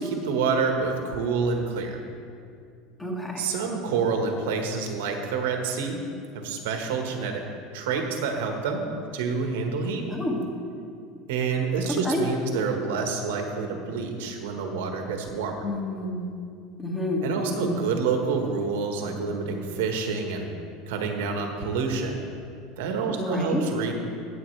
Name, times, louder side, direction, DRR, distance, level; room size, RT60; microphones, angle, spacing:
voice 1, 0.1-2.0 3.4-6.0 6.3-7.4 7.7-8.8 9.1-10.0 11.3-15.6 17.2-20.5 20.9-22.2 22.8-23.9, right 5 dB, 85° right, 3 dB, 1.4 m, -28 dB
voice 2, 3.0-3.5 10.1-10.4 11.9-12.2 15.6-16.2 16.8-17.8 23.1-23.6, left 1 dB, 10° left, -1 dB, 1.8 m, -29 dB
17.5 x 7.2 x 3.3 m, 2.4 s
supercardioid pair, 125°, 0 cm